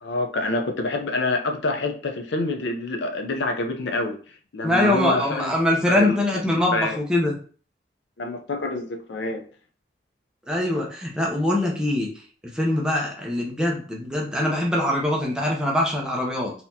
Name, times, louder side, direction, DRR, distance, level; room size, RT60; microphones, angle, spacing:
voice 1, 0.0-4.2 4.5-5.6 5.9-6.2 6.7-7.0 8.2-9.4, left 2 dB, 75° left, 5 dB, 0.5 m, -26 dB
voice 2, 4.6-7.3 10.5-12.1 12.5-16.5, left 1 dB, 5° right, -2 dB, 0.6 m, -23 dB
3.9 x 2.9 x 2.7 m, 0.42 s
head